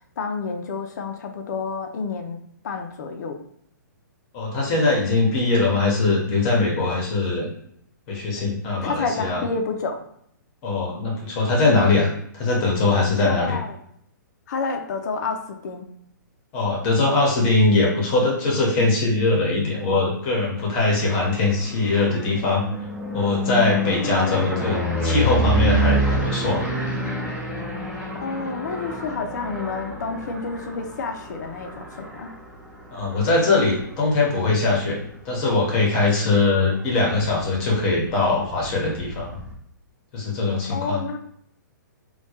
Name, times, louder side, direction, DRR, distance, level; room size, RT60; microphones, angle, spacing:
voice 1, 0.2-2.4 2.6-3.4 8.8-10.0 13.2-13.8 14.5-15.8 28.2-32.3 40.7-41.2, left 4 dB, 60° left, 5 dB, 0.4 m, -29 dB
voice 2, 4.3-7.5 8.1-9.4 10.6-13.6 16.5-22.6 23.1-26.6 32.9-35.0 35.2-39.4 40.1-41.2, left 3 dB, 35° left, -2 dB, 0.7 m, -21 dB
sound 1, 21.0-34.9 35.4-35.8 36.1-36.2 36.5-39.5, equal, 10° right, 0.6 m, -28 dB
2.1 x 2.1 x 2.8 m, 0.69 s
hypercardioid pair, 125°, 11 cm